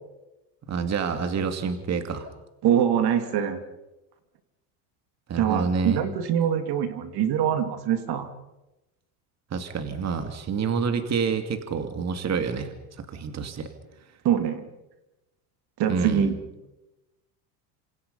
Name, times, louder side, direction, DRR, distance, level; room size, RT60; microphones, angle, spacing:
voice 1, 0.7-2.3 5.3-6.0 9.5-13.7 15.9-16.3, right 5 dB, 35° right, 7 dB, 2.5 m, -28 dB
voice 2, 2.6-3.6 5.4-8.3 14.2-14.7 15.8-16.4, right 9 dB, 50° right, 8 dB, 2.7 m, -24 dB
28.0 x 26.5 x 5.5 m, 0.98 s
supercardioid pair, 115°, 48 cm